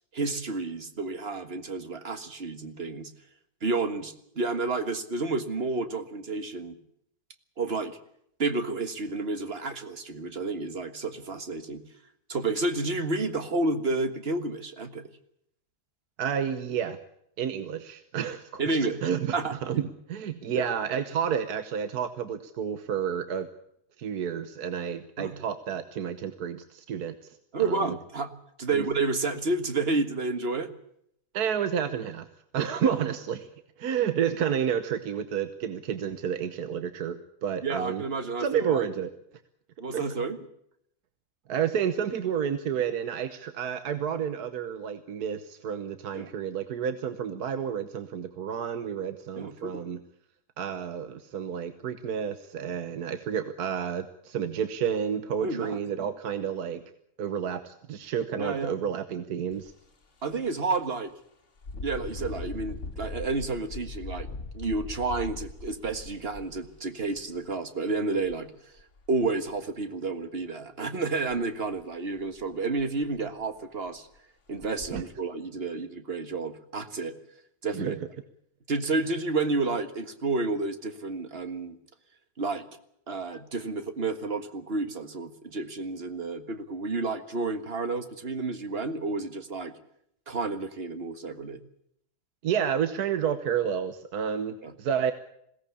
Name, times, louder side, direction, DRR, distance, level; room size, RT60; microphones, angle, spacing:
voice 1, 0.1-3.1 3.6-6.8 7.6-8.0 8.4-11.8 12.3-15.0 18.6-19.0 19.3-19.6 20.5-20.7 25.2-25.3 27.5-28.3 28.6-30.7 32.8-32.9 37.6-38.9 39.8-40.4 46.1-46.3 49.4-49.8 55.4-55.8 58.4-58.8 60.2-61.1 61.8-64.3 64.5-68.5 69.1-74.1 74.5-77.1 77.6-78.0 78.7-81.8 82.4-82.7 83.1-89.7 90.3-91.6 94.6-94.7, right 3 dB, 40° right, 9 dB, 1.8 m, -30 dB
voice 2, 16.2-17.0 17.4-19.4 19.6-23.5 24.0-28.0 28.7-28.9 31.3-32.3 32.5-33.5 33.8-38.0 38.4-39.1 39.9-40.0 41.5-50.0 50.6-56.8 57.2-59.7 74.9-75.0 77.7-78.0 92.4-95.1, right 8 dB, 80° right, 10 dB, 1.6 m, -30 dB
Engine, 59.5-59.7 60.2-60.3 61.6-67.4 68.2-68.3 68.8-69.5 71.3-71.4 71.8-71.9 72.4-72.5 72.8-73.3 73.9-74.0 74.6-75.0, left 3 dB, 50° left, 2.2 m, -40 dB
21.0 x 17.5 x 8.5 m, 0.73 s
omnidirectional pair, 1.6 m